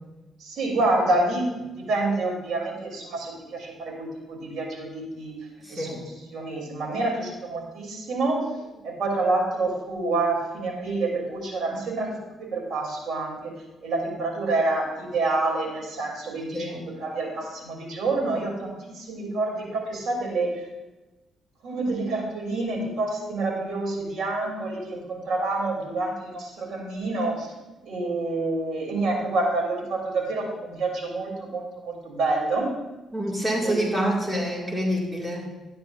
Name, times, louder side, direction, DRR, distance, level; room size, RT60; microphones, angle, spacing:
voice 1, 0.4-1.5 1.8-5.4 5.7-5.9 6.3-13.5 13.8-20.7 21.6-27.5 27.9-32.7 33.6-34.2, right 2 dB, 65° right, -1 dB, 3.3 m, -28 dB
voice 2, 5.6-6.0 16.5-16.9 33.1-35.5, equal, 15° right, -3 dB, 2.3 m, -27 dB
12.0 x 10.0 x 2.6 m, 1.1 s
cardioid pair, 90°, 0 cm